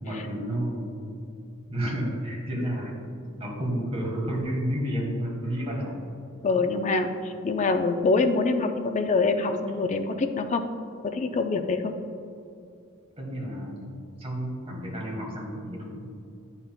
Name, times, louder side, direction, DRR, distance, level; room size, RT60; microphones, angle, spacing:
voice 1, 0.0-1.1 1.7-5.9 9.5-9.6 13.2-16.1, equal, 30° right, -3 dB, 1.5 m, -31 dB
voice 2, 6.4-10.6 11.1-11.9, left 3 dB, 35° left, 7 dB, 0.4 m, -25 dB
9.4 x 5.6 x 2.2 m, 2.5 s
head